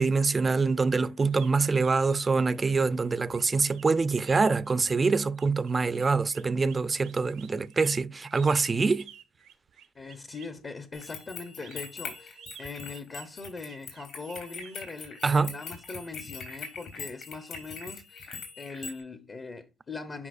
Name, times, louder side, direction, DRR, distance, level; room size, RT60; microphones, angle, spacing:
voice 1, 0.0-9.1 15.2-15.5, right 4 dB, 35° right, 0.5 m, -25 dB
sound 1, 1.3-10.6 11.4-14.8, right 10 dB, 90° right, 1.1 m, -52 dB
voice 2, 9.9-20.3, left 4 dB, 40° left, 0.8 m, -41 dB
sound 2, 10.9-19.0, left 5 dB, 75° left, 3.0 m, -42 dB
9.8 x 4.6 x 2.5 m
supercardioid pair, 70°, 0 cm